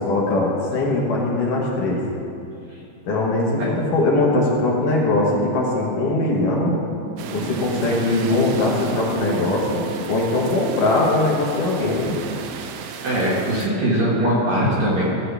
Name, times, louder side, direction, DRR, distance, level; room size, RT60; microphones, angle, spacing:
voice 1, 0.0-2.0 3.1-6.8 7.3-12.2, left 2 dB, 65° left, -3 dB, 2.2 m, -21 dB
sound 1, 7.2-13.7, right 6 dB, 85° right, 2.9 m, -34 dB
voice 2, 13.0-15.0, right 1 dB, 65° right, -7 dB, 1.8 m, -21 dB
16.0 x 7.4 x 3.4 m, 2.7 s
omnidirectional pair, 5.3 m